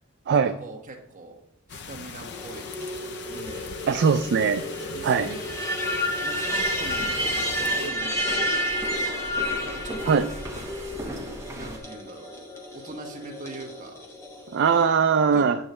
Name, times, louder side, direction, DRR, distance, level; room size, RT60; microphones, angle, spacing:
voice 1, 0.3-1.4 1.7-2.8 3.3-4.2 4.9-5.4 6.2-10.4 11.5-12.3 12.7-14.0 15.3-15.5, right 2 dB, 35° right, 1 dB, 1.2 m, -42 dB
sound 1, 1.7-7.9, left 6 dB, 50° left, 0.4 m, -40 dB
sound 2, 2.2-14.8, equal, 10° left, 1.0 m, -31 dB
voice 2, 3.9-4.7 5.0-5.3 10.1-10.3 14.5-15.6, right 6 dB, 50° right, 8 dB, 0.3 m, -20 dB
sound 3, 6.5-11.8, right 1 dB, 10° right, 0.9 m, -39 dB
8.8 x 3.1 x 6.6 m, 0.73 s
head